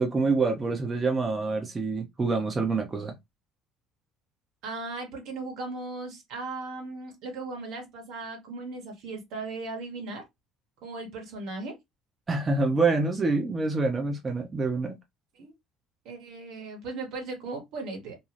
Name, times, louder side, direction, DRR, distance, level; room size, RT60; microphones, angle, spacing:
voice 1, 0.0-3.1 12.3-15.0, right 3 dB, 30° right, 0.8 m, -26 dB
voice 2, 4.6-10.2 10.8-11.7 15.4-15.5 16.0-18.2, right 3 dB, 65° right, 1.2 m, -37 dB
2.7 x 2.3 x 3.2 m
hypercardioid pair, 60°, 0 cm